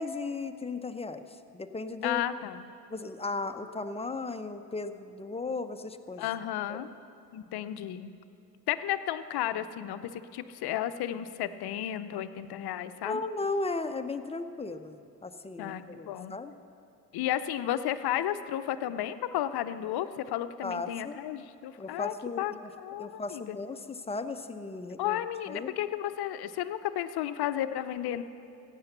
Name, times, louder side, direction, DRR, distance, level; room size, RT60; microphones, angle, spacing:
voice 1, 0.0-2.2 2.9-6.3 6.7-6.8 13.0-16.5 20.6-21.2 21.8-22.7 23.0-25.7, left 3 dB, 15° left, 8 dB, 0.7 m, -36 dB
voice 2, 2.0-2.6 6.2-6.9 7.3-8.1 8.7-13.2 15.6-16.4 17.1-22.5 22.8-23.6 25.0-28.2, left 11 dB, 55° left, 12 dB, 0.7 m, -33 dB
15.5 x 9.1 x 6.7 m, 2.6 s
hypercardioid pair, 55°, 47 cm